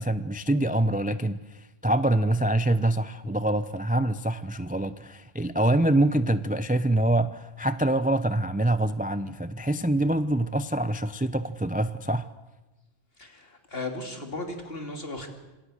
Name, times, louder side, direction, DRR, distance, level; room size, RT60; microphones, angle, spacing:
voice 1, 0.0-12.3, right 1 dB, 10° right, 12 dB, 0.6 m, -25 dB
voice 2, 13.2-15.3, left 2 dB, 50° left, 4 dB, 3.3 m, -36 dB
26.5 x 26.0 x 6.6 m, 1.1 s
omnidirectional pair, 1.3 m